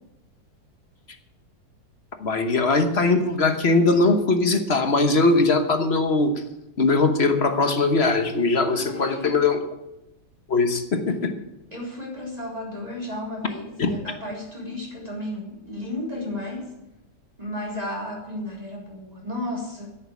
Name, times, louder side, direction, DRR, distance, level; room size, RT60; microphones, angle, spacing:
voice 1, 2.2-6.4 6.8-9.6 10.5-11.3 13.8-13.9, left 3 dB, 40° left, 7 dB, 1.1 m, -20 dB
voice 2, 8.7-9.3 11.7-16.7 17.4-20.0, left 1 dB, 20° right, -3 dB, 4.0 m, -33 dB
11.0 x 8.3 x 9.4 m, 0.94 s
omnidirectional pair, 2.1 m